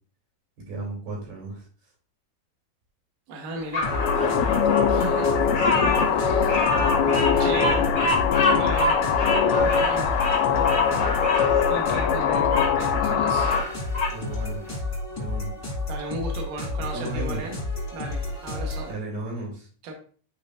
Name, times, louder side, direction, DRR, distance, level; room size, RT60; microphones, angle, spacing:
voice 1, 0.6-1.7 14.1-14.6 15.2-15.5 16.9-17.4 18.9-19.7, right 2 dB, 85° right, -3 dB, 5.0 m, -34 dB
voice 2, 3.3-3.9 4.9-5.3 6.2-6.6 7.4-8.1 8.5-9.2 9.8-10.1 11.7-13.6 15.9-17.6 17.9-18.9 19.8-19.9, right 2 dB, 70° right, 1 dB, 2.6 m, -35 dB
Bird vocalization bird call bird song, 3.7-12.7 13.2-14.2, left 2 dB, 70° left, 0.8 m, -27 dB
sound 1, 3.8-18.9, left 2 dB, 15° left, 1.0 m, -31 dB
sound 2, 3.9-13.6, left 7 dB, 90° left, 2.8 m, -22 dB
11.0 x 3.9 x 2.5 m, 0.42 s
omnidirectional pair, 4.3 m